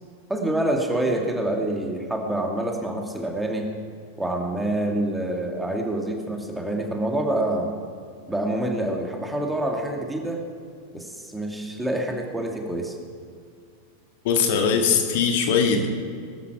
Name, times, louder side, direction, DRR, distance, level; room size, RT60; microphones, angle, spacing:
voice 1, 0.3-3.7 4.2-7.7 8.3-10.4 10.9-13.0, right 1 dB, 5° right, 1 dB, 2.4 m, -26 dB
voice 2, 14.2-15.9, left 6 dB, 50° left, 3 dB, 1.9 m, -21 dB
20.0 x 12.5 x 4.9 m, 2.2 s
figure-of-eight pair, 90°, 0 cm